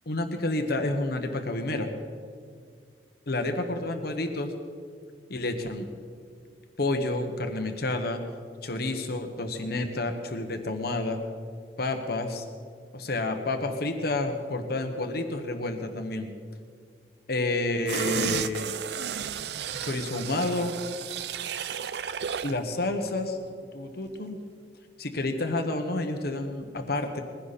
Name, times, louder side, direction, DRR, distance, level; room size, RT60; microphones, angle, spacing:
voice 1, 0.1-1.9 3.3-4.5 5.3-5.9 6.8-8.2 8.6-11.2 11.8-12.4 12.9-16.3 17.3-18.7 19.8-20.7 22.4-23.4 23.7-24.4 25.0-27.2, left 2 dB, 60° left, 5 dB, 1.3 m, -29 dB
sound 1, 17.9-22.6 23.0-23.1, right 7 dB, 70° right, 0.5 m, -33 dB
21.0 x 16.0 x 4.3 m, 2.1 s
head